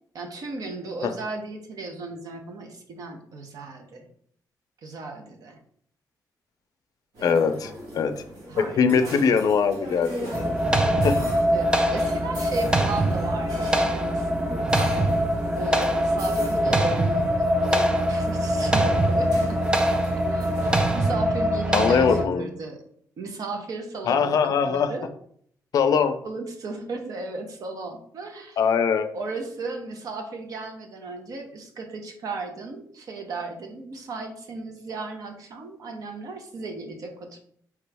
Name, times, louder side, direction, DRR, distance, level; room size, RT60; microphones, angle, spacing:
voice 1, 0.1-4.1 4.8-5.6 7.2-8.1 8.5-9.4 11.5-14.6 15.5-17.3 17.6-19.8 20.2-22.8 23.2-25.1 26.2-28.6 29.1-37.4, right 3 dB, 60° right, 4 dB, 0.8 m, -36 dB
sound 1, 7.1-21.0, equal, 85° right, 1.5 m, -39 dB
voice 2, 7.2-8.2 8.7-10.5 11.0-11.2 21.7-22.5 24.1-24.9 25.7-26.1 28.6-29.1, left 6 dB, 60° left, 8 dB, 0.5 m, -22 dB
sound 2, 10.3-22.3, equal, 15° right, 0.4 m, -23 dB
4.8 x 3.0 x 3.4 m, 0.63 s
wide cardioid pair, 150°, 7 cm